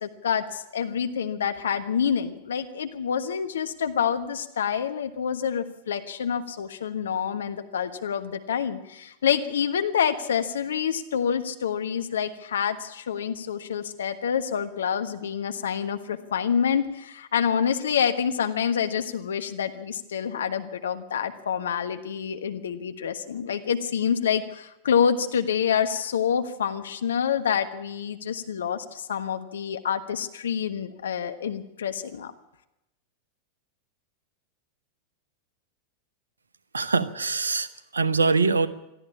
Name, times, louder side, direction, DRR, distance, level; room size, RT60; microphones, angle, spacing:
voice 1, 0.0-32.3, left 7 dB, 65° left, 8 dB, 1.3 m, -27 dB
voice 2, 36.7-38.7, right 4 dB, 75° right, 13 dB, 1.0 m, -23 dB
22.5 x 13.5 x 8.5 m, 0.90 s
figure-of-eight pair, 90°, 0 cm